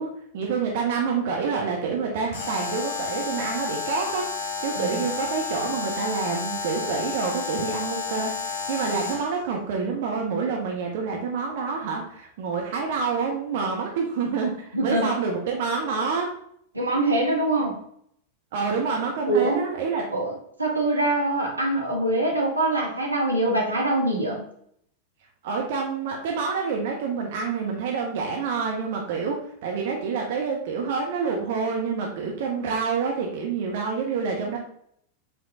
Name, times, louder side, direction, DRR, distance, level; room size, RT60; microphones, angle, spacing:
voice 1, 0.0-16.3 18.5-20.0 25.4-34.6, right 5 dB, 55° right, 0 dB, 0.7 m, -27 dB
Alarm, 2.3-9.3, left 5 dB, 55° left, 1.3 m, -31 dB
voice 2, 14.7-15.1 16.7-17.8 19.3-19.6 20.1-20.3 20.6-24.4, right 2 dB, 80° right, -1 dB, 1.0 m, -24 dB
4.7 x 3.5 x 2.6 m, 0.67 s
figure-of-eight pair, 90°, 0 cm